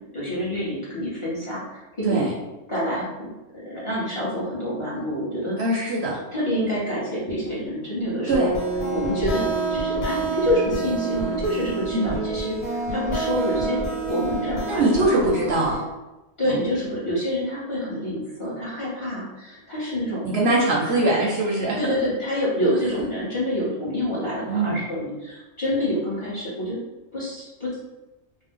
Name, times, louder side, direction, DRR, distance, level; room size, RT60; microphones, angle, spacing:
voice 1, 0.1-2.2 2.7-3.3 3.5-5.6 6.3-8.5 8.9-13.8 14.1-15.5 16.4-20.3 20.8-21.1 21.7-26.8 27.1-27.8, equal, 25° left, -8 dB, 0.8 m, -27 dB
voice 2, 5.6-6.2 8.3-8.5 11.9-12.2 14.6-15.8 16.5-16.6 20.2-21.9 24.5-24.8, right 2 dB, 65° right, -4 dB, 0.7 m, -22 dB
sound 1, 8.3-15.9, right 3 dB, 80° left, 1.2 m, -27 dB
2.6 x 2.0 x 3.5 m, 1.1 s
omnidirectional pair, 1.3 m